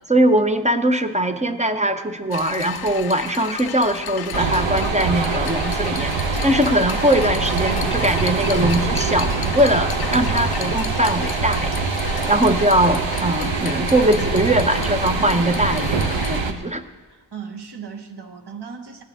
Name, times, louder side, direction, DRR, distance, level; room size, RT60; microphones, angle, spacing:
voice 1, 0.1-6.1 6.4-11.7 12.3-16.8, right 1 dB, 15° right, 8 dB, 0.7 m, -21 dB
sound 1, 2.3-16.4, left 10 dB, 55° left, 0.5 m, -33 dB
sound 2, 4.3-16.5, right 4 dB, 85° right, 1.0 m, -24 dB
voice 2, 17.1-19.0, right 6 dB, 60° right, 5 dB, 1.3 m, -36 dB
17.5 x 11.0 x 3.6 m, 1.3 s
wide cardioid pair, 115°, 44 cm